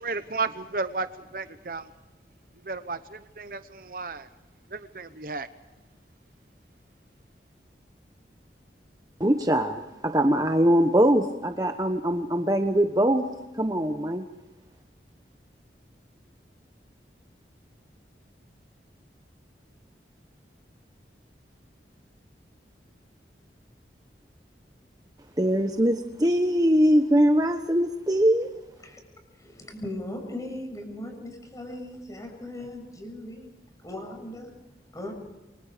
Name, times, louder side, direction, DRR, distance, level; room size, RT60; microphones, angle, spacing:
voice 1, 0.0-1.9 2.6-4.3 4.7-5.5, right 3 dB, 50° right, 11 dB, 0.9 m, -33 dB
voice 2, 9.2-13.3 13.5-14.2 25.4-28.5, equal, 20° right, 5 dB, 1.1 m, -22 dB
voice 3, 29.4-33.5 33.8-34.5 34.9-35.1, left 1 dB, 20° left, 4 dB, 7.0 m, -38 dB
28.5 x 25.0 x 5.1 m, 1.1 s
head